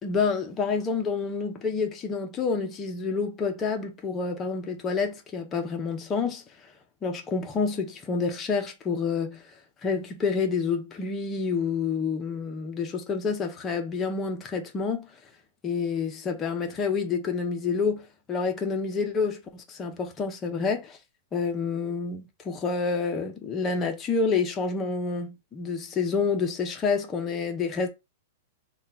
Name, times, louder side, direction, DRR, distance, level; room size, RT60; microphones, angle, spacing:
voice 1, 0.0-6.4 7.0-9.4 9.8-15.1 15.6-21.0 21.3-27.9, left 5 dB, 15° left, 0.6 m, -28 dB
3.7 x 2.3 x 4.3 m
supercardioid pair, 175°, 0 cm